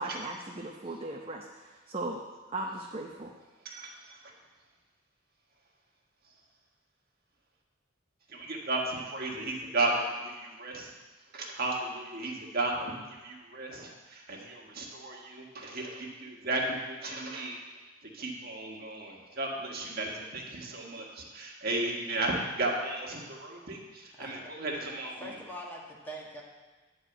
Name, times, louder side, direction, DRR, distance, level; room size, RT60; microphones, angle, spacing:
voice 1, 0.0-2.2 2.5-3.3, right 2 dB, 30° right, 0 dB, 0.7 m, -37 dB
voice 2, 3.6-4.3 8.3-10.9 11.3-17.6 18.1-25.3, right 2 dB, 50° right, -1 dB, 1.6 m, -34 dB
voice 3, 24.1-24.5 25.2-26.4, equal, 10° left, -3 dB, 1.6 m, -43 dB
10.0 x 4.7 x 7.9 m, 1.3 s
head